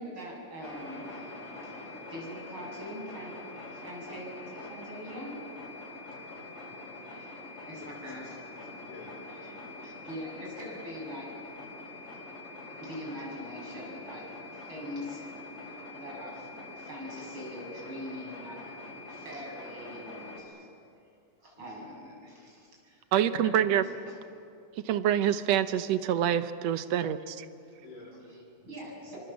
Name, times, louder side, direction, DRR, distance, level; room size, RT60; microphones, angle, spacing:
voice 1, 0.0-5.4 7.0-8.3 8.6-8.7 9.3-11.6 11.9-12.1 12.8-14.2 14.5-16.5 16.7-18.6 19.1-20.7 21.4-24.2 28.3-29.2, equal, 40° right, -2 dB, 8.1 m, -43 dB
sound 1, 0.6-20.4, left 2 dB, 50° left, 5.9 m, -45 dB
voice 2, 6.3-6.8 7.8-8.4 8.8-9.2 21.6-21.7 27.8-28.2, left 2 dB, 85° left, -4 dB, 5.9 m, -50 dB
voice 3, 23.1-23.9 24.8-27.5, right 10 dB, 70° right, 11 dB, 1.8 m, -26 dB
28.0 x 25.0 x 7.4 m, 2.5 s
omnidirectional pair, 3.5 m